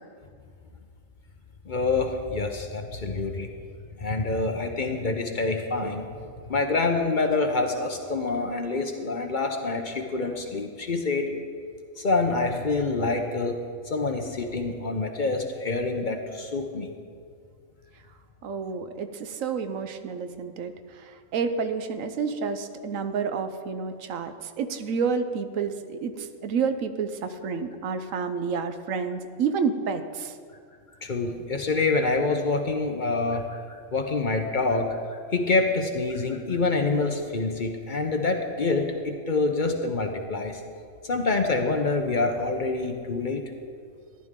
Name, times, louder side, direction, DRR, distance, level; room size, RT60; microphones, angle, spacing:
voice 1, 1.7-3.5 4.0-6.1 6.5-11.4 12.0-13.6 13.8-16.9 31.0-40.6 41.0-43.4, left 3 dB, 45° left, 4 dB, 0.8 m, -26 dB
voice 2, 18.4-30.3, right 5 dB, 80° right, 9 dB, 1.1 m, -29 dB
14.0 x 11.0 x 3.7 m, 2.2 s
omnidirectional pair, 1.4 m